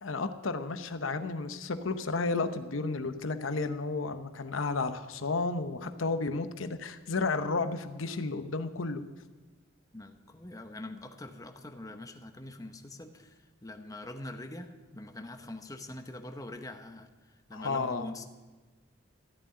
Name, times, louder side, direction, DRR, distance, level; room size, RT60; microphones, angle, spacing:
voice 1, 0.0-9.0 17.5-18.1, left 3 dB, 85° left, 9 dB, 0.8 m, -32 dB
voice 2, 9.9-17.1 17.5-18.3, left 1 dB, 20° left, 6 dB, 0.9 m, -44 dB
14.0 x 7.5 x 9.4 m, 1.3 s
head